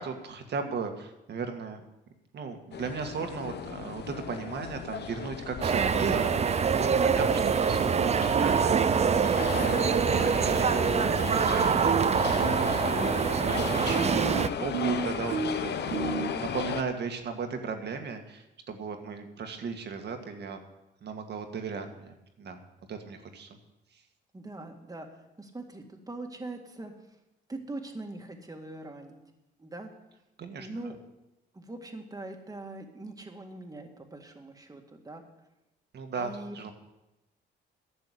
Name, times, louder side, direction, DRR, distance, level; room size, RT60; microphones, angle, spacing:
voice 1, 0.0-1.8 2.3-12.2 12.6-20.6 21.0-22.6 22.9-23.6 30.4-30.7 35.9-36.7, right 5 dB, 60° right, 5 dB, 1.8 m, -36 dB
sound 1, 2.7-16.8, left 8 dB, 60° left, 0.9 m, -35 dB
sound 2, 5.6-14.5, right 6 dB, 35° right, 0.5 m, -25 dB
sound 3, 10.3-10.4 10.7-11.3 11.6-16.3, right 6 dB, 90° right, 1.4 m, -33 dB
voice 2, 24.3-25.1 25.4-26.9 27.5-29.2 29.6-29.9 30.6-31.0 31.5-35.2 36.2-36.7, right 2 dB, 20° right, 4 dB, 2.0 m, -42 dB
11.5 x 6.9 x 8.2 m, 0.94 s
cardioid pair, 90°, 20 cm